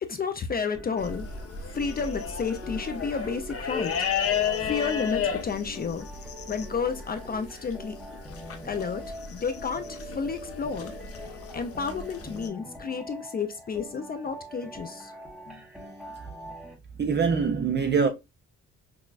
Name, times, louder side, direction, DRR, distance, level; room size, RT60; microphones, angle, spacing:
voice 1, 0.0-1.3 1.7-3.9 4.6-6.1 6.5-8.0 8.6-9.1 9.3-10.9 11.5-15.1 15.5-15.6, left 5 dB, 30° left, 0.4 m, -31 dB
sound 1, 0.7-16.7, equal, 5° right, 0.8 m, -44 dB
sound 2, 1.0-12.5, left 7 dB, 50° left, 0.8 m, -33 dB
voice 2, 17.0-18.1, right 5 dB, 35° right, 0.5 m, -23 dB
5.9 x 2.2 x 2.3 m
cardioid pair, 140°, 30 cm